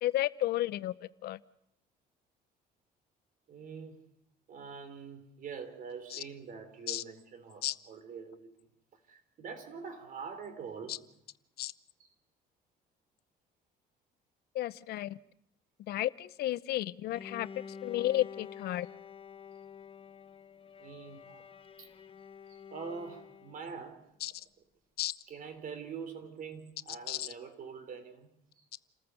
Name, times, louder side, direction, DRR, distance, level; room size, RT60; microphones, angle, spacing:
voice 1, 0.0-1.4 6.1-6.2 6.9-7.0 7.6-7.8 10.9-11.0 11.6-11.7 14.5-15.2 15.9-17.5 17.8-18.9 24.2-24.3 25.0-25.1 27.1-27.3, left 14 dB, 70° left, 0.7 m, -32 dB
voice 2, 3.5-4.0 4.5-8.5 9.1-11.0 12.0-12.1 20.8-21.5 21.8-21.9 22.7-24.1 25.3-28.6, right 6 dB, 55° right, 3.7 m, -44 dB
Bowed string instrument, 17.1-23.8, left 7 dB, 35° left, 1.2 m, -49 dB
28.5 x 14.5 x 7.0 m
cardioid pair, 110°, 17 cm